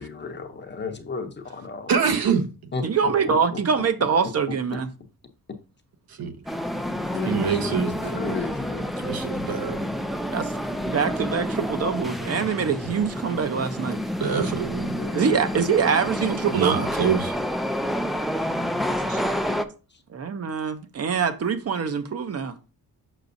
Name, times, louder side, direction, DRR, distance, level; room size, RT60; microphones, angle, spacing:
voice 1, 0.0-2.0 2.7-3.3 6.8-8.9 12.8-12.9 14.6-15.6 19.9-20.0, left 4 dB, 30° left, 0.7 m, -35 dB
voice 2, 1.9-2.7 6.1-6.4 7.2-8.3 9.0-9.8 14.1-15.0 16.5-17.3 19.0-19.2, right 6 dB, 75° right, 1.1 m, -25 dB
voice 3, 2.8-4.9 10.3-10.5 10.8-14.0 15.1-16.8 20.1-22.6, right 6 dB, 40° right, 0.7 m, -24 dB
sound 1, 6.5-19.6, equal, ahead, 0.3 m, -29 dB
6.7 x 5.8 x 2.6 m
wide cardioid pair, 170°, 37 cm